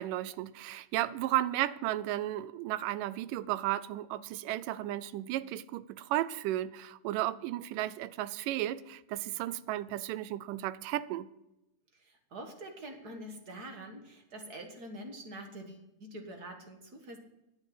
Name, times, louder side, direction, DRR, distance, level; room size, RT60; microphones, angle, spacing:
voice 1, 0.0-11.3, right 14 dB, 90° right, 2.2 m, -34 dB
voice 2, 11.9-17.2, right 1 dB, 40° right, 1.5 m, -45 dB
11.0 x 8.9 x 8.0 m
omnidirectional pair, 3.7 m